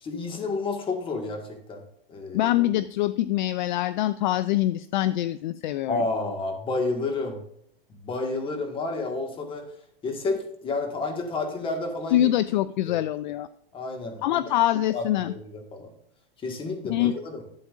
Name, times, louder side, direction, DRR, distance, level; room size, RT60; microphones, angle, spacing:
voice 1, 0.0-1.4 1.7-1.8 2.1-2.5 5.9-7.4 8.0-9.7 10.0-12.3 12.9-13.0 13.7-14.4 14.9-15.9 16.4-17.4, left 3 dB, 15° left, 4 dB, 1.6 m, -30 dB
voice 2, 2.3-6.0 12.1-13.5 14.2-15.3 16.9-17.1, left 13 dB, 50° left, 15 dB, 0.4 m, -24 dB
12.0 x 8.5 x 2.5 m, 0.71 s
hypercardioid pair, 150°, 30 cm